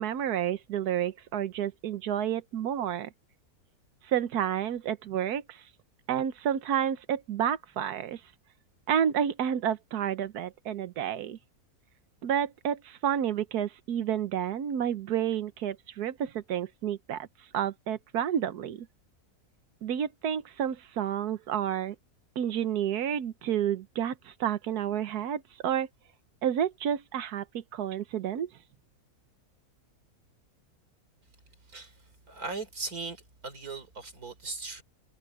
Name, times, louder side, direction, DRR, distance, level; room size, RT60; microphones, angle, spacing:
voice 1, 0.0-3.1 4.1-5.6 6.1-8.2 8.9-11.4 12.2-17.3 17.5-18.9 19.8-21.9 22.4-25.9 26.4-28.5, right 9 dB, 85° right, 1.4 m, -30 dB
voice 2, 32.3-34.8, right 3 dB, 70° right, 4.3 m, -38 dB
omnidirectional pair, 1.6 m